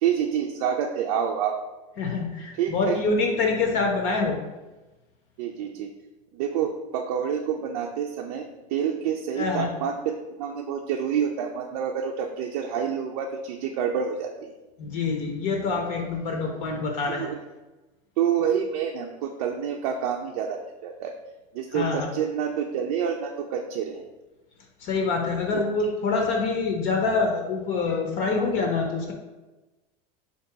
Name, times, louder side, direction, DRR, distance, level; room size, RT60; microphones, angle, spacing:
voice 1, 0.0-1.6 2.5-3.0 5.4-5.9 6.3-14.5 15.8-15.9 17.1-17.4 18.2-21.1 21.5-24.1, right 8 dB, 70° right, 1 dB, 0.5 m, -28 dB
voice 2, 2.0-4.4 9.4-9.7 14.8-17.3 21.7-22.1 24.8-29.1, left 4 dB, 45° left, 1 dB, 0.7 m, -26 dB
3.9 x 2.9 x 4.6 m, 1.1 s
supercardioid pair, 160°, 20 cm